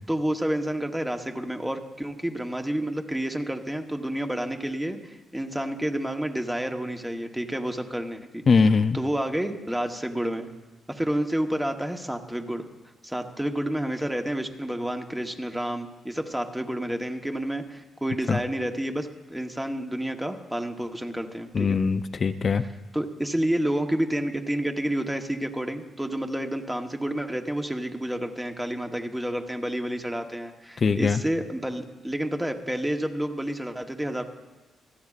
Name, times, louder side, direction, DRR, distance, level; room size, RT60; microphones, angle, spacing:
voice 1, 0.1-8.4 8.9-10.5 10.9-12.6 13.0-21.8 22.9-34.2, right 1 dB, 5° right, 5 dB, 1.0 m, -29 dB
voice 2, 8.5-9.0 18.3-18.4 21.5-22.6 30.8-31.2, left 5 dB, 40° left, 12 dB, 0.4 m, -21 dB
27.0 x 9.4 x 2.4 m, 1.1 s
cardioid pair, 100°, 0 cm